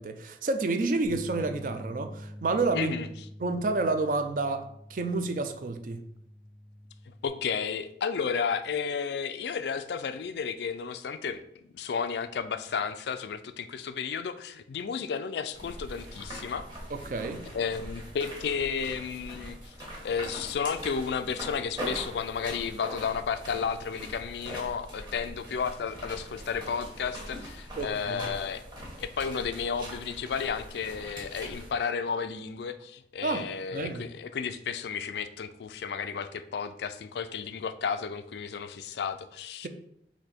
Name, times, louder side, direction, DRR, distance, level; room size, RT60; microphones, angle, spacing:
voice 1, 0.0-2.9 3.4-6.1 16.9-17.4 27.8-28.2 33.2-34.0, right 3 dB, 45° right, 7 dB, 0.4 m, -30 dB
sound 1, 1.0-7.3, equal, 70° right, 1.6 m, -46 dB
voice 2, 2.7-3.1 7.1-11.4 11.7-16.6 17.5-28.6 29.0-39.7, left 6 dB, 70° left, 11 dB, 0.3 m, -33 dB
sound 2, 15.5-31.7, equal, 25° right, 1.2 m, -42 dB
4.2 x 2.8 x 4.2 m, 0.72 s
head